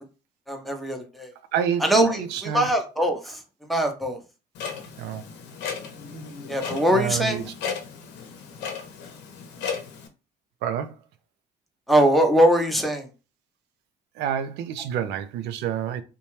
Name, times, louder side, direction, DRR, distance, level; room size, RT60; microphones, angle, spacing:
voice 1, 0.5-1.3 1.8-3.4 3.7-4.2 6.5-7.5 11.9-13.1, right 1 dB, ahead, 0.6 m, -22 dB
voice 2, 1.5-2.7 5.0-5.2 6.9-7.4 10.6-10.9 14.2-16.0, right 9 dB, 85° right, 0.4 m, -28 dB
Clock, 4.5-10.1, left 6 dB, 85° left, 0.6 m, -35 dB
2.7 x 2.2 x 3.1 m
cardioid pair, 110°, 17 cm